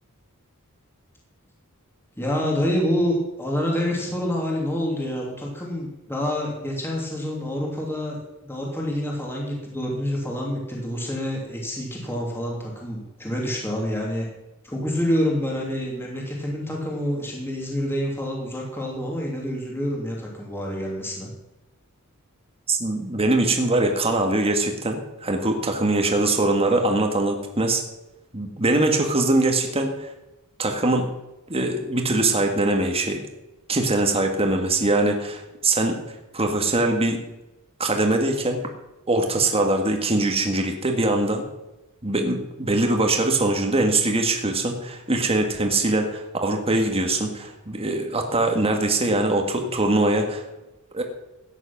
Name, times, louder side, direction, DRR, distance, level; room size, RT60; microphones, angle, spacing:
voice 1, 2.2-14.3 14.6-21.3 45.9-46.0, equal, 10° left, -2 dB, 2.9 m, -27 dB
voice 2, 22.7-27.8 28.3-30.1 30.6-31.1 31.5-33.2 33.7-36.0 36.3-37.2 37.8-38.6 39.1-41.4 42.0-50.4 50.9-51.0, right 2 dB, 25° right, 3 dB, 1.7 m, -22 dB
14.5 x 9.8 x 5.9 m, 0.99 s
head